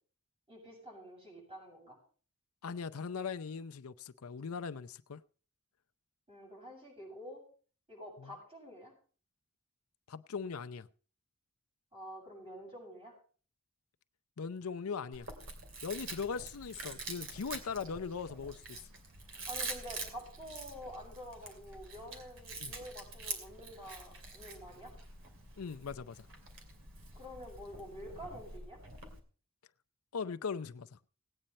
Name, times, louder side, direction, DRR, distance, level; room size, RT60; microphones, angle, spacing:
voice 1, 0.5-2.0 6.3-7.4 7.9-8.9 11.9-13.2 19.5-24.9 27.1-28.8, equal, 25° right, 7.3 m, -48 dB
voice 2, 2.6-5.2 8.2-8.3 10.1-10.9 14.4-15.3 15.8-18.9 22.6-22.7 25.6-26.3 30.1-30.9, left 5 dB, 85° left, 0.6 m, -40 dB
Chewing mastication, 15.1-29.2, right 3 dB, 65° right, 2.6 m, -46 dB
17.5 x 9.1 x 4.1 m
head